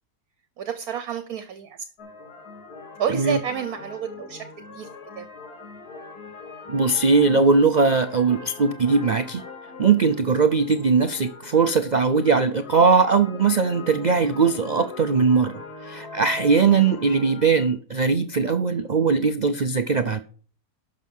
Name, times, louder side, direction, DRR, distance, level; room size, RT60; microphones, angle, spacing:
voice 1, 0.6-1.8 3.0-4.5 4.7-4.9 5.2-5.3, right 8 dB, 65° right, 1.4 m, -29 dB
sound 1, 2.0-17.7, left 4 dB, 70° left, 2.7 m, -41 dB
voice 2, 6.7-9.4 9.8-20.2, right 4 dB, 85° right, 0.3 m, -20 dB
12.0 x 6.5 x 5.5 m
omnidirectional pair, 1.7 m